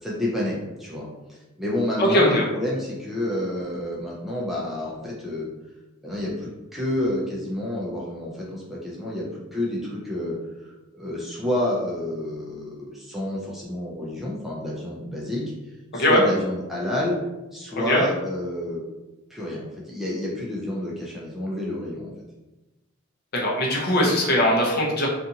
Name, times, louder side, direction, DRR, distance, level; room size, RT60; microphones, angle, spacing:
voice 1, 0.0-1.0 1.6-5.5 6.0-10.3 10.9-15.4 15.9-17.2 17.5-18.8 19.3-22.1, left 1 dB, ahead, -5 dB, 0.4 m, -29 dB
voice 2, 2.0-2.4 15.9-16.2 17.9-18.0 23.3-25.1, left 1 dB, 50° left, -3 dB, 0.7 m, -20 dB
2.5 x 2.5 x 2.7 m, 1.0 s
head